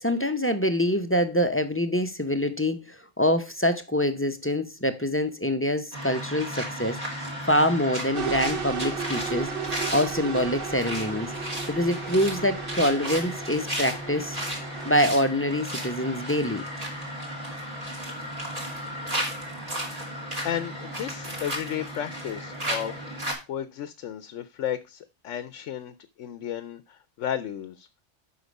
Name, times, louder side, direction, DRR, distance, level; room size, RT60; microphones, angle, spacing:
voice 1, 0.0-11.3 11.7-14.4 14.8-16.6, equal, 15° left, 0.6 m, -25 dB
sound 1, 5.9-23.3, equal, 30° right, 2.7 m, -34 dB
sound 2, 8.1-14.9, right 8 dB, 55° right, 0.8 m, -35 dB
voice 2, 20.4-23.2 23.5-27.9, left 10 dB, 85° left, 1.0 m, -33 dB
8.0 x 5.9 x 5.2 m
omnidirectional pair, 1.2 m